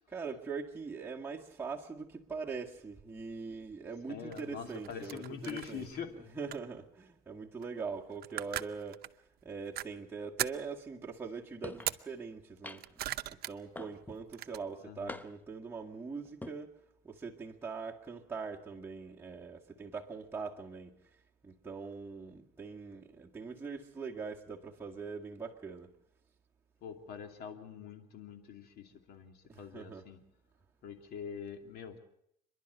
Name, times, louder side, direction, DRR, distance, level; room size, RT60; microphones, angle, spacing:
voice 1, 0.1-9.0 9.4-12.8 13.3-16.8 17.0-21.0 21.4-25.9 29.5-30.1, right 5 dB, 15° right, 1.9 m, -42 dB
voice 2, 4.1-6.1 14.8-15.2 26.8-30.2 30.8-32.0, left 7 dB, 70° left, 2.7 m, -44 dB
sound 1, 4.3-6.1 6.5-6.8 7.6-7.8 8.1-9.1 9.8-9.9 10.4-10.7 11.8-12.0 12.6-13.5 13.9-14.6, right 14 dB, 65° right, 0.7 m, -39 dB
sound 2, 11.6-11.9 12.6-13.1 13.8-14.3 15.1-15.6 16.3-16.6, left 2 dB, 10° left, 0.8 m, -45 dB
29.0 x 11.5 x 7.9 m
cardioid pair, 110°, 17 cm